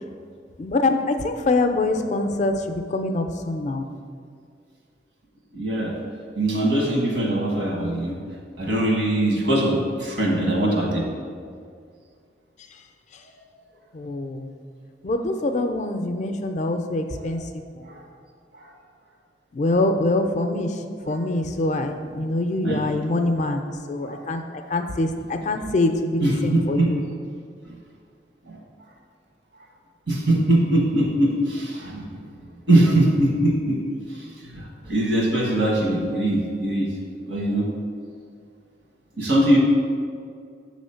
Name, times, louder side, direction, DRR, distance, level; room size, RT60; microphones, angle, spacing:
voice 1, 0.6-3.9 13.9-14.6 15.0-17.6 19.5-20.8 21.1-24.4 24.7-27.0, left 2 dB, 40° left, 6 dB, 0.4 m, -24 dB
voice 2, 5.5-5.9 6.3-8.2 8.6-11.1 17.2-17.3 17.9-18.0 22.6-22.8 24.0-24.2 26.2-26.9 28.5-28.6 30.1-32.1 32.7-33.8 34.5-36.9 37.3-37.7 39.2-39.6, right 1 dB, 80° right, -2 dB, 1.3 m, -21 dB
7.0 x 3.1 x 5.6 m, 2.2 s
head